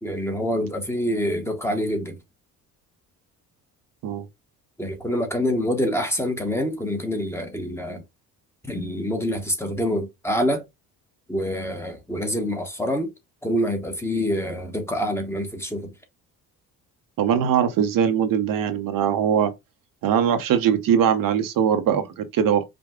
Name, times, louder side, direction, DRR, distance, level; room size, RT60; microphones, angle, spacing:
voice 1, 0.0-2.2 4.8-8.0 8.6-10.6 11.3-13.1 13.4-15.9, equal, 5° left, 1.0 m, -26 dB
voice 2, 17.2-19.5 20.0-22.6, right 8 dB, 70° right, 0.9 m, -21 dB
5.2 x 2.2 x 3.6 m
cardioid pair, 120°, 35 cm